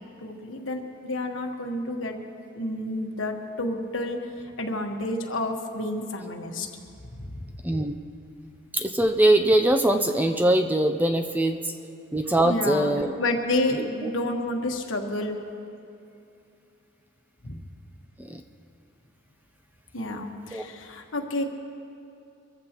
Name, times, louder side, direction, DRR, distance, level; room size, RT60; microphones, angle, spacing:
voice 1, 0.2-2.2 2.5-4.2 4.6-6.7 7.1-7.4 12.4-12.9 13.2-15.4 17.4-17.6 19.9-21.4, left 1 dB, 65° left, 3 dB, 1.3 m, -30 dB
voice 2, 7.6-8.0 8.7-11.6 12.1-13.1 13.8-13.9 18.2-18.4 20.5-20.6, right 1 dB, 10° right, 6 dB, 0.4 m, -22 dB
24.0 x 14.5 x 3.0 m, 2.6 s
head